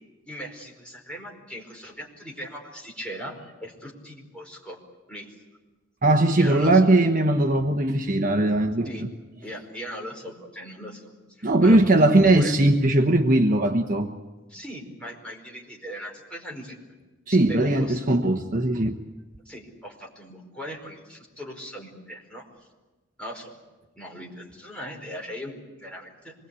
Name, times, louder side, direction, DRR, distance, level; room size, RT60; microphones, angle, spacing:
voice 1, 0.3-4.8 5.1-5.3 6.4-6.8 8.8-9.0 9.4-11.1 11.4-12.5 14.5-16.8 17.4-18.0 19.4-22.4 23.2-23.6 23.9-26.3, equal, 5° left, -2 dB, 4.9 m, -39 dB
voice 2, 6.0-8.9 11.4-14.1 17.3-19.0, right 2 dB, 40° right, 4 dB, 1.2 m, -19 dB
26.0 x 21.0 x 8.4 m, 1.2 s
head